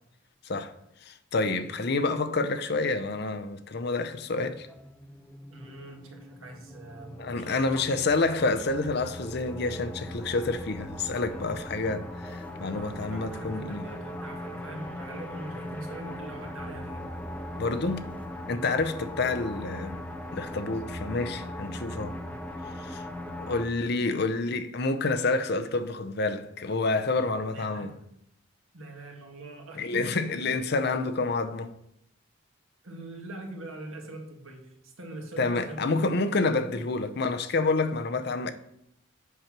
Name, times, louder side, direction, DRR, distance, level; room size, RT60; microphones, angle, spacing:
voice 1, 1.1-4.7 7.2-13.9 17.6-18.1 18.5-20.0 20.3-22.2 22.8-23.0 23.5-28.0 29.8-31.7 35.4-38.5, left 3 dB, 50° left, 0.6 m, -28 dB
sound 1, 4.7-23.6, left 1 dB, 5° left, 0.6 m, -39 dB
voice 2, 5.5-7.9 12.7-17.1 27.5-27.9 28.7-30.5 32.8-36.0, right 1 dB, 75° right, 1.7 m, -43 dB
8.2 x 4.4 x 6.0 m
head